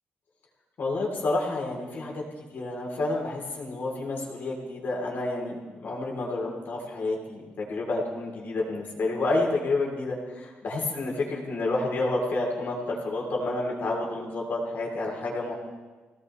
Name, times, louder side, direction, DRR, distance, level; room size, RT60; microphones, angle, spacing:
voice 1, 0.8-2.2 2.5-15.5, left 2 dB, 55° left, -2 dB, 3.8 m, -29 dB
22.5 x 17.5 x 3.4 m, 1.3 s
wide cardioid pair, 155°, 4 cm